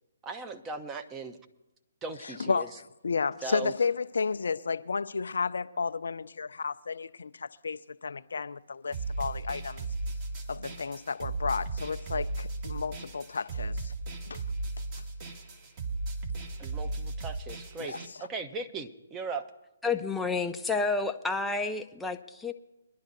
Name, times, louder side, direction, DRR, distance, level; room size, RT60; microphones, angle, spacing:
voice 1, 0.2-1.4 2.0-2.7 3.4-3.7 16.6-17.9 18.2-19.5, right 4 dB, 15° right, 0.8 m, -38 dB
voice 2, 2.2-2.7 3.0-9.9 10.5-13.9 14.3-14.4 17.8-18.3, left 5 dB, 70° left, 0.4 m, -32 dB
sound 1, 8.9-18.1, right 3 dB, 35° right, 1.8 m, -36 dB
voice 3, 19.8-22.5, left 4 dB, 5° left, 0.6 m, -30 dB
23.5 x 11.0 x 2.7 m
figure-of-eight pair, 140°, 0 cm